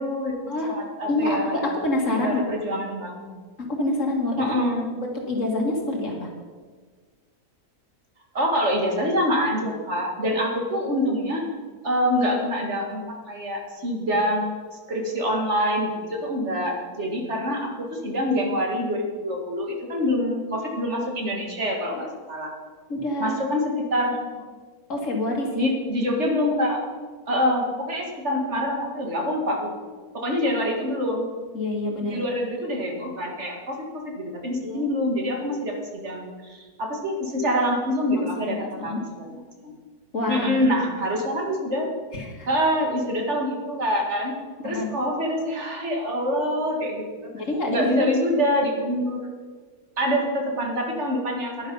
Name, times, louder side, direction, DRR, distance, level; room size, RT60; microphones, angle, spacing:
voice 1, 0.0-0.3 0.7-1.7 2.2-3.3 4.4-4.9 8.3-11.4 11.8-22.5 23.2-24.4 25.6-26.8 27.3-29.7 30.1-31.3 32.1-39.7 40.3-41.9 42.5-44.3 44.6-47.3 47.7-49.3 50.0-51.7, equal, 50° right, 1 dB, 2.3 m, -26 dB
voice 2, 1.1-2.4 3.6-4.5 5.0-6.3 22.9-23.5 24.9-25.7 31.5-32.2 34.6-34.9 38.4-39.0 40.1-40.7 42.1-42.5 44.6-44.9 47.3-48.2, left 2 dB, 55° left, 0 dB, 2.3 m, -27 dB
11.0 x 10.5 x 5.5 m, 1.5 s
omnidirectional pair, 1.5 m